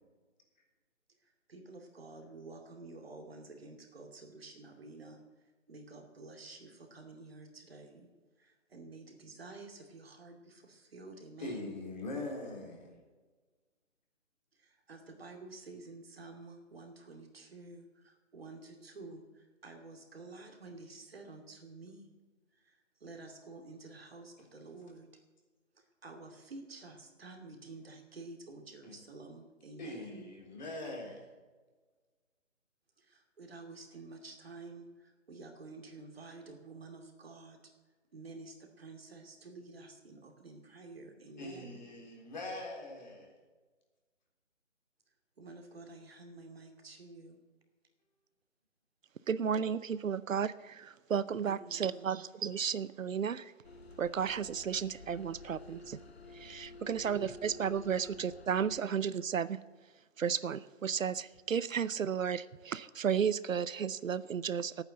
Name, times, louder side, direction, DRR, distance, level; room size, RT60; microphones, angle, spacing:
voice 1, 1.2-5.2 5.7-8.1 8.4-11.8 14.5-22.1 22.5-25.2 25.7-30.3 33.0-37.6 38.1-41.8 45.4-47.4 51.4-52.2, right 3 dB, 50° right, 3 dB, 2.6 m, -50 dB
voice 2, 11.4-13.0 28.8-29.0 29.8-31.3 41.4-43.3, left 2 dB, 35° left, 0 dB, 3.5 m, -42 dB
voice 3, 49.3-53.5 54.0-56.0 56.3-59.6 60.2-64.8, right 7 dB, 90° right, 17 dB, 0.7 m, -33 dB
sound 1, 53.6-58.8, left 2 dB, 55° left, 1.0 m, -51 dB
13.5 x 9.2 x 7.8 m, 1.3 s
hypercardioid pair, 175°, 38 cm